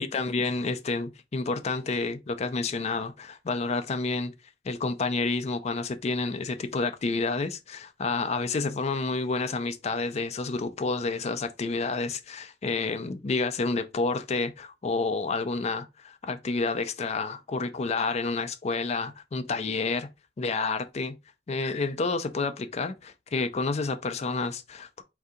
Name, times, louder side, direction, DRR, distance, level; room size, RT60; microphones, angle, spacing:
voice 1, 0.0-4.3 4.6-20.1 20.4-21.2 21.5-25.0, left 3 dB, 35° left, 0.4 m, -29 dB
4.5 x 2.7 x 3.6 m
head